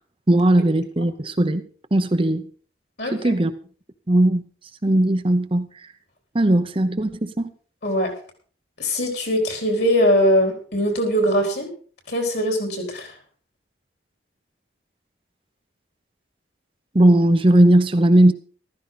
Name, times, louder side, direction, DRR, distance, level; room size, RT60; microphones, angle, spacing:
voice 1, 0.3-1.6 1.9-2.5 3.1-3.5 4.1-4.4 4.8-5.7 6.3-7.5 16.9-18.3, right 1 dB, 25° right, 0.7 m, -17 dB
voice 2, 3.0-3.3 7.8-8.1 8.8-11.7 12.1-13.1, equal, 55° left, 4.6 m, -21 dB
14.5 x 13.5 x 4.0 m
head